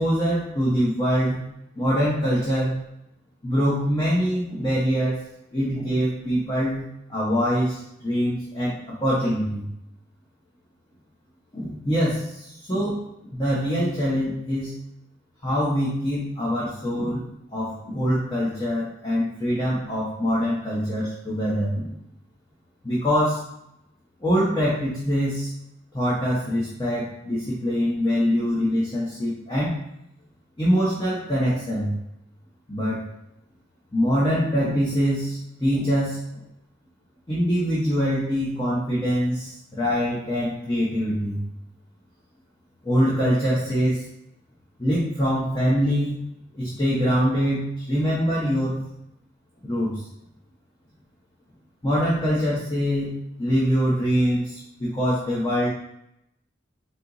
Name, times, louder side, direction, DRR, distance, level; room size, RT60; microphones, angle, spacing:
voice 1, 0.0-1.4 1.7-2.8 3.4-5.2 5.5-9.7 11.5-13.0 13.3-14.7 15.4-21.9 22.8-23.4 24.2-25.5 25.9-29.7 30.6-32.0 32.7-33.0 33.9-36.4 37.3-41.4 42.8-44.0 44.8-46.3 46.5-48.8 49.6-50.0 51.8-55.7, equal, 20° left, -6 dB, 0.9 m, -24 dB
4.1 x 2.9 x 3.9 m, 0.81 s
head